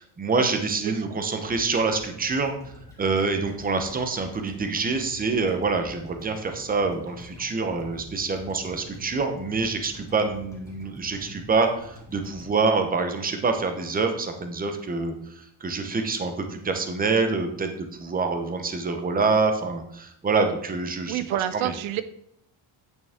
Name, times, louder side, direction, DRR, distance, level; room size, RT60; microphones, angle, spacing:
voice 1, 0.0-2.5 3.0-21.2 21.5-21.7, right 4 dB, 20° right, 6 dB, 0.8 m, -26 dB
sound 1, 1.4-13.6 13.9-14.0, equal, 5° left, 1.9 m, -47 dB
voice 2, 21.1-22.0, right 13 dB, 75° right, 13 dB, 0.7 m, -28 dB
9.2 x 6.1 x 3.6 m, 0.71 s
cardioid pair, 145°, 48 cm